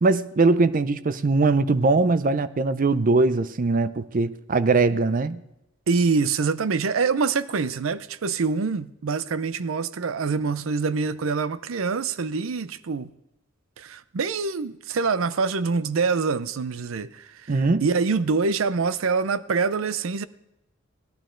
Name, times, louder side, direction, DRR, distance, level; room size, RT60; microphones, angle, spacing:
voice 1, 0.0-5.4 17.5-17.8, right 3 dB, 40° right, 0.5 m, -21 dB
voice 2, 5.9-13.1 13.8-20.2, right 4 dB, 90° right, 0.5 m, -25 dB
18.0 x 12.0 x 3.8 m
head